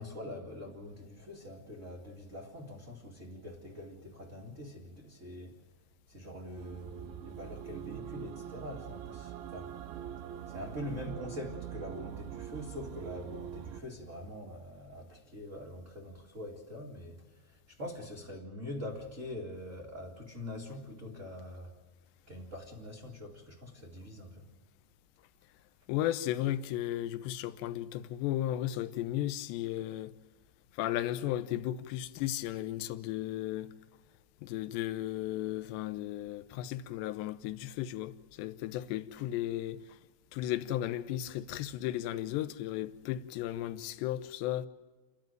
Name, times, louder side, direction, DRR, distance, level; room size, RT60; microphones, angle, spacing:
voice 1, 0.0-5.6 6.1-9.7 10.4-21.7 22.3-24.5, left 1 dB, 30° right, 1.5 m, -44 dB
sound 1, 6.6-13.8, right 11 dB, 85° right, 3.3 m, -43 dB
voice 2, 25.9-30.2 30.7-33.7 34.4-40.0 40.3-44.7, left 13 dB, 80° left, 3.0 m, -35 dB
29.5 x 12.0 x 9.1 m
omnidirectional pair, 5.1 m